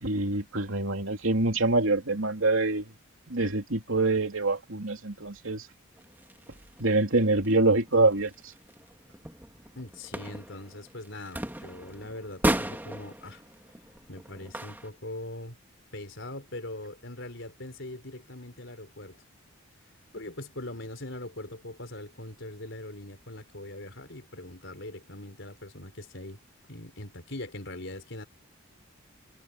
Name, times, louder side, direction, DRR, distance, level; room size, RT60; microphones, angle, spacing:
voice 1, 0.0-2.8 3.3-5.6 6.8-8.3, right 2 dB, 70° right, 2.8 m, -25 dB
sound 1, 6.0-14.9, right 1 dB, 10° right, 2.2 m, -36 dB
voice 2, 9.7-13.4 14.1-15.6 15.9-19.2 20.1-26.4 26.7-28.3, left 1 dB, 60° left, 5.0 m, -41 dB
head